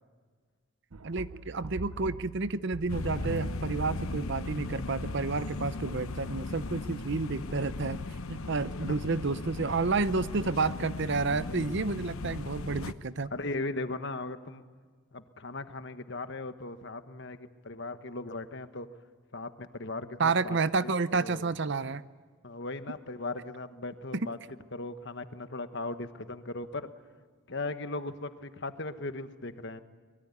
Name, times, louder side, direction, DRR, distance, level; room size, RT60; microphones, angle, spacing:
sound 1, 0.9-4.3, right 3 dB, 85° right, 0.8 m, -42 dB
voice 1, 1.0-8.0 8.3-13.3 20.2-22.0 24.1-24.3, right 4 dB, 55° right, 15 dB, 0.7 m, -30 dB
sound 2, 2.9-12.9, left 3 dB, 75° left, 0.9 m, -37 dB
voice 2, 8.6-9.0 11.4-11.7 13.3-14.6 15.1-18.9 19.3-20.9 21.2-21.5 22.4-24.4 24.7-26.9 27.5-29.8, left 2 dB, 55° left, 10 dB, 1.3 m, -38 dB
23.5 x 22.0 x 9.6 m, 1.5 s
head